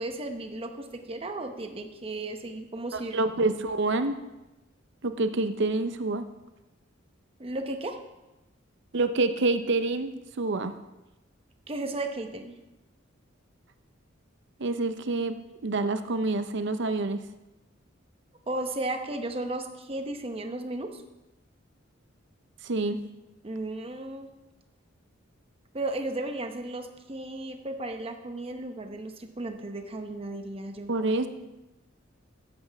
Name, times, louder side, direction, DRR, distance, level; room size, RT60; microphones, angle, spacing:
voice 1, 0.0-3.1 7.4-8.0 11.7-12.5 18.5-21.0 23.4-24.3 25.7-30.9, right 2 dB, 30° right, 6 dB, 0.9 m, -34 dB
voice 2, 2.9-4.1 5.0-6.2 8.9-10.7 14.6-15.3 15.6-17.2 22.6-23.0 30.9-31.3, right 2 dB, 65° right, 10 dB, 0.7 m, -27 dB
14.0 x 7.9 x 3.5 m, 1.0 s
head